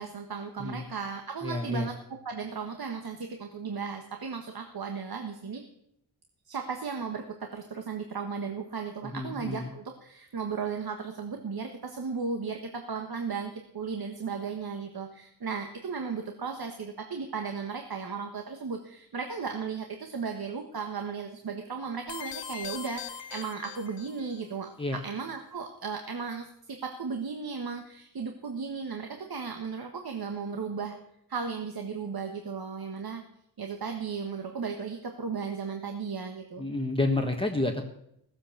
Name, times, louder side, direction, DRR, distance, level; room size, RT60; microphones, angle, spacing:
voice 1, 0.0-5.6 6.5-31.0 31.3-33.2 33.6-36.7, right 5 dB, 55° right, 5 dB, 1.4 m, -35 dB
voice 2, 1.4-1.9 9.1-9.7 24.8-25.0 36.6-37.9, left 2 dB, 10° left, 1 dB, 1.5 m, -29 dB
sound 1, 22.1-24.4, left 8 dB, 75° left, 1.0 m, -40 dB
15.5 x 7.6 x 7.2 m, 0.77 s
cardioid pair, 45°, 43 cm